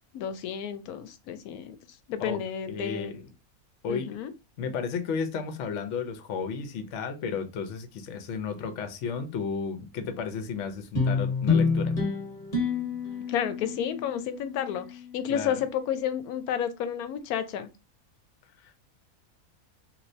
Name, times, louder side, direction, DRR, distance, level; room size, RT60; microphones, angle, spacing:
voice 1, 0.1-1.8 2.1-3.2 3.9-4.3 13.3-17.7, left 9 dB, 85° left, 1.1 m, -31 dB
voice 2, 2.7-3.2 3.8-4.1 4.6-11.9 15.3-15.6 18.6-18.8, left 5 dB, 60° left, 0.9 m, -33 dB
sound 1, 11.0-15.6, left 4 dB, 30° left, 1.1 m, -28 dB
3.1 x 2.9 x 2.6 m
omnidirectional pair, 1.5 m